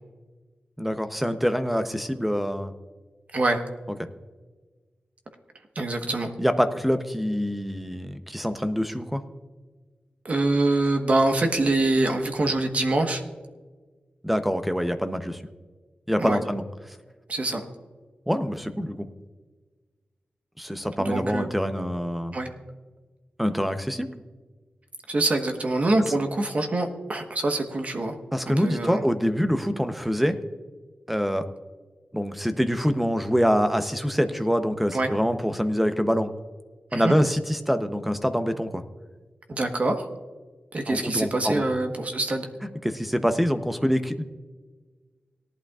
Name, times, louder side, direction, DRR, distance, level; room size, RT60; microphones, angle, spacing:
voice 1, 0.8-2.7 4.0-4.1 6.4-9.2 14.2-15.4 16.1-16.6 18.3-19.1 20.6-22.4 23.4-24.1 28.3-30.4 31.1-31.5 32.1-36.3 36.9-38.8 40.9-41.6 42.8-44.2, equal, 5° right, 9 dB, 0.7 m, -25 dB
voice 2, 3.3-3.6 5.7-6.3 10.2-13.2 16.2-16.4 17.3-17.6 21.0-21.5 22.3-22.5 25.1-28.1 28.6-29.0 34.9-35.1 36.9-37.1 39.5-40.1 40.7-42.5, right 2 dB, 45° right, 5 dB, 1.2 m, -25 dB
18.0 x 11.5 x 2.4 m, 1.4 s
wide cardioid pair, 135°, 3 cm